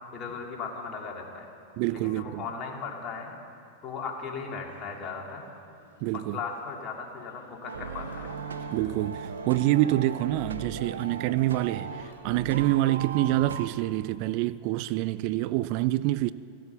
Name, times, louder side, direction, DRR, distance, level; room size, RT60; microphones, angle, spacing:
voice 1, 0.1-1.5 1.9-3.3 3.8-5.5 6.1-8.3, left 5 dB, 40° left, 2.4 m, -37 dB
voice 2, 1.8-2.5 6.0-6.4 8.7-16.3, right 16 dB, 55° right, 0.3 m, -26 dB
sound 1, 4.4-12.1, left 4 dB, 75° left, 2.2 m, -53 dB
sound 2, 7.7-13.7, right 6 dB, 90° right, 0.7 m, -37 dB
16.5 x 8.2 x 6.9 m
hypercardioid pair, 105°, 0 cm